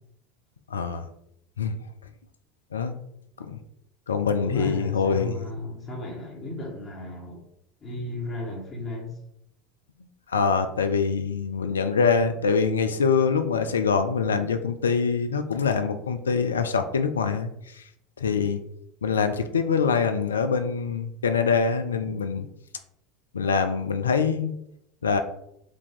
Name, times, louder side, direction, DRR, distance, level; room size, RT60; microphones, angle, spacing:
voice 1, 0.7-1.0 1.6-1.8 2.7-3.0 3.5-3.6 4.1-5.4 10.3-17.5 18.2-18.6 19.0-22.4 23.3-24.5 25.0-25.2, left 5 dB, 85° left, 8 dB, 0.4 m, -24 dB
voice 2, 4.4-7.4 7.8-9.2 18.2-18.4, left 2 dB, 35° left, -3 dB, 1.4 m, -34 dB
5.0 x 2.7 x 3.6 m, 0.76 s
hypercardioid pair, 75°, 0 cm